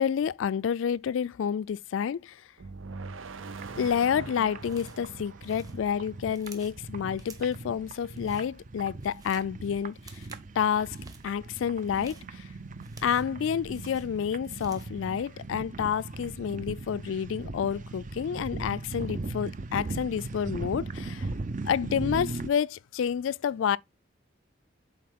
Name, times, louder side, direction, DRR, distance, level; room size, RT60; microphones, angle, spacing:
voice 1, 0.0-2.4 3.8-10.2 10.6-11.0 11.2-12.5 13.0-21.3 21.7-23.8, left 8 dB, 75° left, 0.3 m, -29 dB
sound 1, 2.6-6.7, right 4 dB, 85° right, 0.6 m, -43 dB
sound 2, 3.5-22.5, right 3 dB, 40° right, 0.5 m, -39 dB
sound 3, 4.6-5.1 5.4-6.8 7.2-7.7 8.0-8.5 8.8-9.5 9.9-10.5 10.8-11.3 11.8-13.4 13.7-15.0, right 3 dB, 20° right, 1.2 m, -53 dB
7.6 x 4.3 x 3.5 m
head